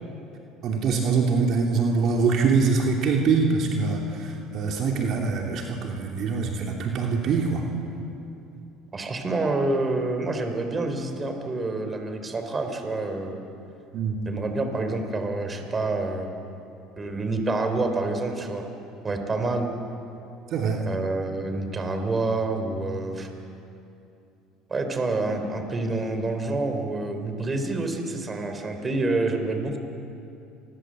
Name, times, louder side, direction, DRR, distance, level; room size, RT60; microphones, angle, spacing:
voice 1, 0.6-7.7 13.9-14.2 20.5-20.8, right 4 dB, 55° right, 1 dB, 2.9 m, -24 dB
voice 2, 8.9-13.4 14.3-16.3 17.0-18.7 19.0-19.7 20.9-23.3 24.7-29.8, right 2 dB, 25° right, 6 dB, 3.9 m, -27 dB
28.5 x 22.0 x 7.7 m, 2.7 s
supercardioid pair, 90°, 0 cm